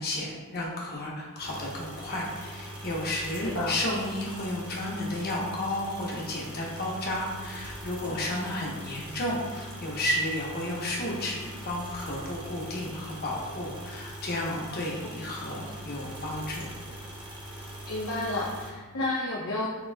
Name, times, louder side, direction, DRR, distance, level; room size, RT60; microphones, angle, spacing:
voice 1, 0.0-16.7, left 1 dB, 45° left, -4 dB, 1.0 m, -32 dB
sound 1, 1.4-18.7, right 1 dB, 20° right, 0.9 m, -42 dB
voice 2, 14.7-15.1 17.9-19.7, left 2 dB, 70° left, -5 dB, 0.7 m, -31 dB
6.8 x 3.0 x 2.3 m, 1.3 s
head